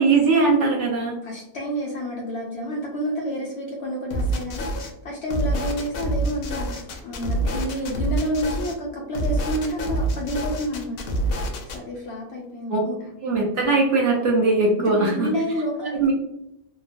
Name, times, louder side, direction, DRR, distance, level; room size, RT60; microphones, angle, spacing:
voice 1, 0.0-1.1 12.7-12.8 13.2-15.3 15.9-16.1, right 3 dB, 65° right, -2 dB, 0.8 m, -20 dB
voice 2, 1.2-11.5 11.7-13.1 14.8-16.1, equal, 70° left, -2 dB, 0.6 m, -29 dB
sound 1, 4.1-4.9 5.3-8.7 9.1-11.8, right 1 dB, 85° left, 1.1 m, -26 dB
2.9 x 2.0 x 2.5 m, 0.85 s
omnidirectional pair, 1.6 m